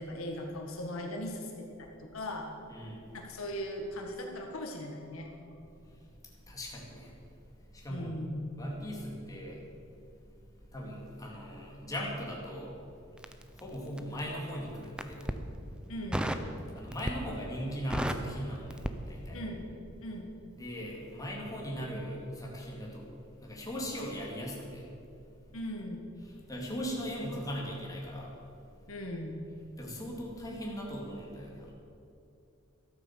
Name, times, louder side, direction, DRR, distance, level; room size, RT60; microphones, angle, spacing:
voice 1, 0.0-2.5 3.1-5.3 7.9-8.5 15.9-16.2 19.3-19.6 20.0-20.3 25.5-26.1 28.9-29.4, left 1 dB, 80° left, 2 dB, 1.8 m, -39 dB
voice 2, 2.7-3.1 6.4-7.1 7.7-8.1 8.6-9.6 10.7-12.7 13.5-15.4 16.7-19.4 20.6-23.1 23.4-24.9 26.2-28.3 29.8-31.7, equal, 15° left, -2 dB, 2.5 m, -39 dB
Crackle, 13.2-14.3 14.9-15.4 16.1-16.5 16.9-17.4 17.7-19.6 19.9-20.1, right 1 dB, 5° right, 0.6 m, -34 dB
13.0 x 9.3 x 7.5 m, 2.6 s
head